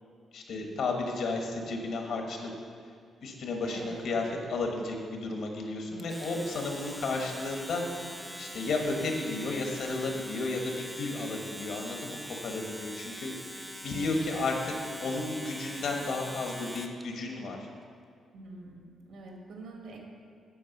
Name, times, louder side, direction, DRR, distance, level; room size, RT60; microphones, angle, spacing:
voice 1, 0.3-2.5 3.2-7.8 8.4-14.7 15.0-17.7, left 3 dB, 65° left, 2 dB, 1.2 m, -33 dB
voice 2, 3.6-4.1 13.9-14.2 18.3-20.0, right 3 dB, 75° right, 0 dB, 1.4 m, -46 dB
Domestic sounds home sounds, 6.0-17.0, equal, 5° right, 0.5 m, -43 dB
8.6 x 4.6 x 6.5 m, 2.1 s
cardioid pair, 150°, 0 cm